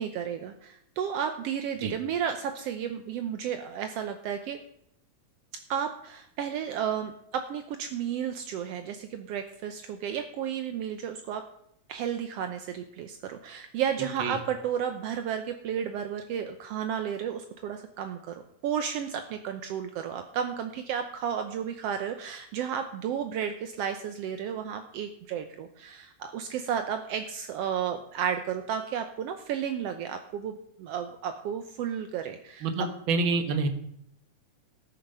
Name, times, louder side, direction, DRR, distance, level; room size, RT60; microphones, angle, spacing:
voice 1, 0.0-4.6 5.7-11.4 11.9-32.7, right 8 dB, 75° right, 7 dB, 1.4 m, -33 dB
voice 2, 32.6-33.7, right 3 dB, 50° right, 7 dB, 1.6 m, -27 dB
18.5 x 6.5 x 5.5 m, 0.74 s
omnidirectional pair, 3.6 m